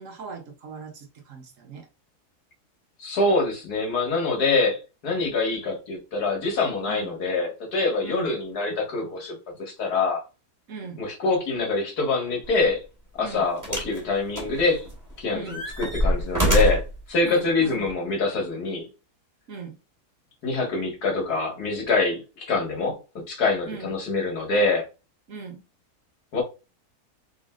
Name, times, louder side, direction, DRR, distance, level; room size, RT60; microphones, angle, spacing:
voice 1, 0.0-1.9 6.9-7.1 8.0-8.4 10.7-11.0 13.2-13.5 15.3-15.6 17.2-17.9 19.5-19.8 23.7-23.9 25.3-25.6, right 5 dB, 60° right, 1.2 m, -39 dB
voice 2, 3.0-10.2 11.0-12.8 13.2-14.9 15.2-18.9 20.4-24.9 26.3-26.4, left 3 dB, 85° left, 2.2 m, -25 dB
sound 1, 12.4-12.6 13.6-14.0 14.4-15.1 15.5-17.0 17.8-17.9, right 1 dB, 15° right, 1.3 m, -25 dB
3.9 x 3.5 x 3.7 m
omnidirectional pair, 1.6 m